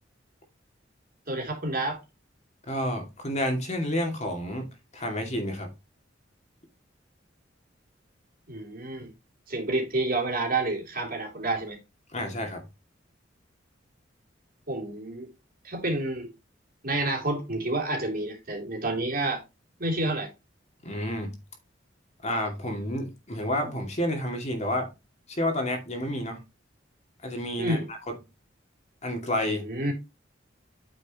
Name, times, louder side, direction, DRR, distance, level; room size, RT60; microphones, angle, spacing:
voice 1, 1.3-2.0 8.5-9.1 9.5-11.8 14.7-15.3 15.6-16.3 16.8-19.4 19.8-20.3 27.6-27.9 29.4-29.9, right 2 dB, 50° right, 3.3 m, -29 dB
voice 2, 2.7-5.7 12.1-12.6 20.8-21.4 22.2-24.9 25.3-26.4 27.2-27.8 29.0-29.7, left 1 dB, 40° left, 2.4 m, -30 dB
9.0 x 6.5 x 3.0 m
head